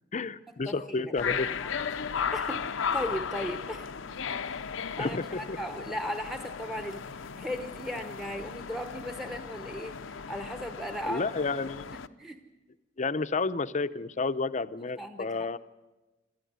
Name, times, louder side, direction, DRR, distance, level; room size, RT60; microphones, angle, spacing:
voice 1, 0.1-1.5 5.0-5.6 11.1-11.9 13.0-15.6, left 3 dB, 40° left, 12 dB, 0.7 m, -31 dB
voice 2, 0.7-1.1 1.6-1.7 2.3-4.7 5.0-11.2 11.9-12.4 15.0-15.5, equal, ahead, 6 dB, 1.0 m, -37 dB
sound 1, 1.2-12.1, left 6 dB, 80° left, 0.7 m, -36 dB
27.0 x 13.5 x 9.5 m, 1.2 s
head